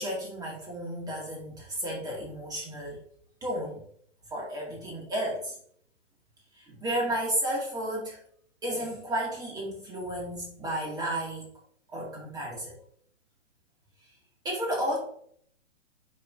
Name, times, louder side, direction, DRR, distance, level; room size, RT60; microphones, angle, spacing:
voice 1, 0.0-3.0 3.4-3.8 4.3-5.6 6.5-8.2 8.6-11.5 11.9-12.7 14.4-15.0, right 1 dB, 10° right, -3 dB, 1.9 m, -32 dB
6.7 x 5.8 x 2.5 m, 0.63 s
hypercardioid pair, 135°, 38 cm